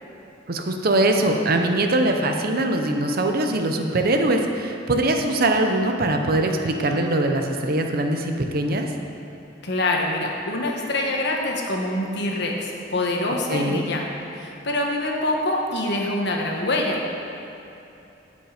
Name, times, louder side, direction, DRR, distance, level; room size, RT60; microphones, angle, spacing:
voice 1, 0.5-8.9 13.5-13.9, right 1 dB, 55° right, 4 dB, 0.8 m, -22 dB
voice 2, 9.6-17.1, left 1 dB, 65° left, 0 dB, 1.3 m, -25 dB
15.5 x 5.5 x 5.0 m, 2.8 s
head